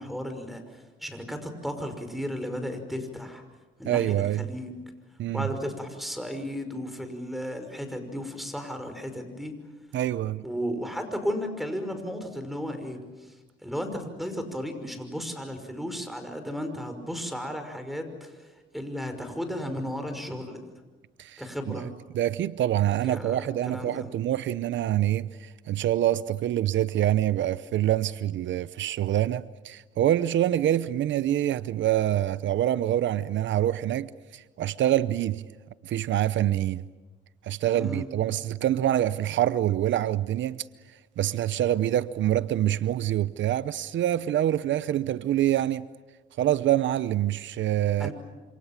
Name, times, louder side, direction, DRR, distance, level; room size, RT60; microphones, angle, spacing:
voice 1, 0.0-3.4 3.8-4.8 5.3-9.5 10.4-13.4 13.6-20.6 21.4-21.9 23.1-24.1 37.7-38.0 48.0-48.1, equal, ahead, 5.7 m, -34 dB
voice 2, 3.9-4.5 5.2-5.5 9.9-10.4 21.2-21.4 21.7-21.9 22.1-35.5 35.8-36.8 37.4-40.6 41.2-45.9 46.4-48.1, right 12 dB, 70° right, 0.8 m, -26 dB
27.5 x 27.0 x 7.4 m
cardioid pair, 90°, 20 cm